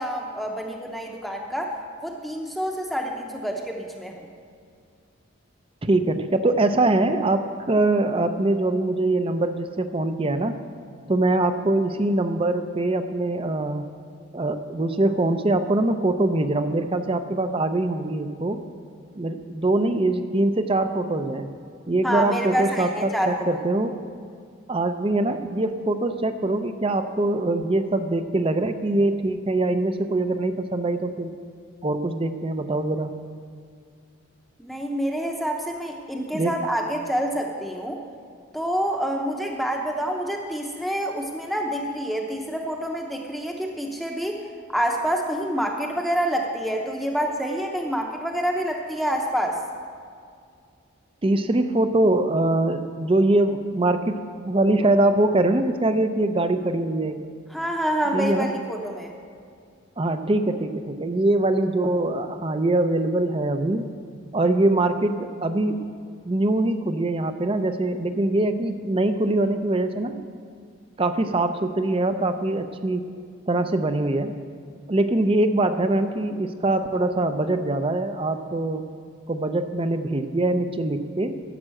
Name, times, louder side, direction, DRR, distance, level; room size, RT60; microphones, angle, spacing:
voice 1, 0.0-1.8 2.0-4.3 22.0-23.5 34.6-38.0 38.5-44.4 44.7-49.6 57.5-59.1, equal, ahead, 1 dB, 0.7 m, -27 dB
voice 2, 5.8-10.6 11.1-13.9 14.3-18.6 19.2-21.5 21.9-24.0 24.7-31.3 31.8-33.1 36.3-36.5 51.2-57.2 58.1-58.5 60.0-63.9 64.3-65.9 66.2-70.2 71.0-73.1 73.5-74.3 74.9-78.8 79.3-81.4, right 2 dB, 25° right, 9 dB, 0.5 m, -23 dB
11.0 x 7.4 x 7.6 m, 2.2 s
head